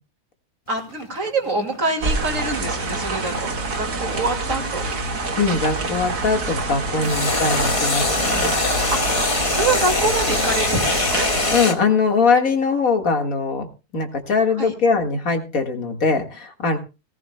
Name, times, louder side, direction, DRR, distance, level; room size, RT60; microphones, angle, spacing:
sound 1, 0.7-5.9 7.0-11.8, left 3 dB, 25° left, 1.0 m, -23 dB
voice 1, 0.7-4.8 6.9-7.1 8.9-9.2 9.5-11.2 14.6-14.7, right 3 dB, 55° right, 3 dB, 2.6 m, -25 dB
sound 2, 2.0-11.6, right 3 dB, 85° right, 2.5 m, -26 dB
voice 2, 5.4-8.6 11.5-13.7 13.9-16.8, left 4 dB, 65° left, 5 dB, 2.2 m, -21 dB
18.5 x 16.0 x 2.2 m, 0.30 s
omnidirectional pair, 1.6 m